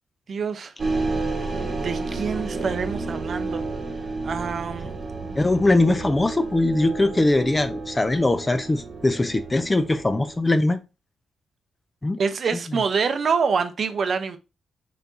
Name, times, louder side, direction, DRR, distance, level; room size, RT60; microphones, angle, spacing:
voice 1, 0.3-0.7 1.7-3.6 4.2-5.0 12.2-14.4, right 5 dB, 45° right, 0.6 m, -26 dB
sound 1, 0.8-10.5, right 3 dB, 30° right, 1.1 m, -31 dB
voice 2, 5.4-10.8 12.0-12.2, left 2 dB, 15° left, 0.4 m, -21 dB
4.5 x 4.1 x 2.6 m
cardioid pair, 120°, 0 cm